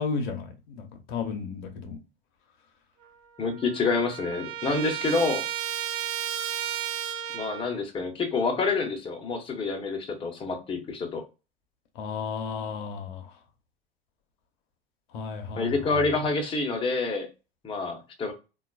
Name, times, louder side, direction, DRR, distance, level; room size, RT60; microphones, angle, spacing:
voice 1, 0.0-2.0 3.5-3.6 12.0-13.3 15.1-16.0, left 5 dB, 50° left, 0.7 m, -33 dB
Trumpet, 3.0-3.1 3.4-7.8, right 10 dB, 45° right, 0.5 m, -33 dB
voice 2, 3.4-5.5 7.3-11.2 15.6-17.3 17.6-18.3, left 3 dB, 15° left, 0.8 m, -27 dB
3.7 x 2.3 x 2.3 m
figure-of-eight pair, 85°, 30 cm